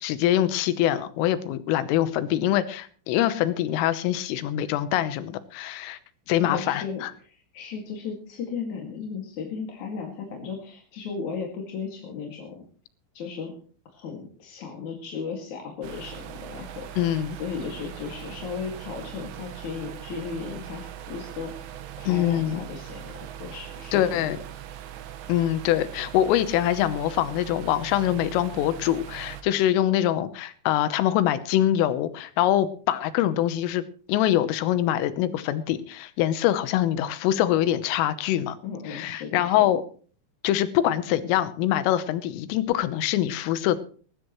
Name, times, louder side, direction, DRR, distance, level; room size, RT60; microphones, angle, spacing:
voice 1, 0.0-6.0 6.3-7.1 17.0-17.4 22.1-22.6 23.9-24.4 25.3-38.6 38.9-39.8 40.4-43.8, left 12 dB, 85° left, 13 dB, 3.6 m, -24 dB
voice 2, 6.4-12.7 13.1-13.5 13.8-16.9 17.4-23.1 23.4-24.3 38.6-39.7, left 5 dB, 50° left, 1 dB, 2.9 m, -35 dB
sound 1, 15.8-29.4, right 11 dB, 80° right, 3.8 m, -40 dB
19.5 x 15.5 x 3.1 m, 0.42 s
omnidirectional pair, 5.7 m